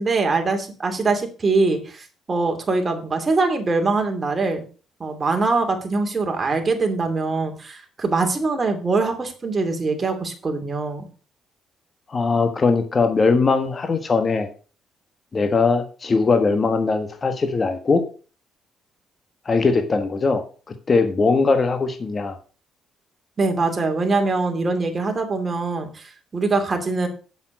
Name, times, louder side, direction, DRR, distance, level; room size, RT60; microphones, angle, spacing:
voice 1, 0.0-4.6 5.0-11.0 23.4-27.1, right 3 dB, 30° right, 4 dB, 2.8 m, -23 dB
voice 2, 12.1-14.5 15.3-18.0 19.4-20.4 20.9-22.4, left 4 dB, 35° left, 7 dB, 1.4 m, -20 dB
7.9 x 7.2 x 6.3 m, 0.37 s
cardioid pair, 90°, 0 cm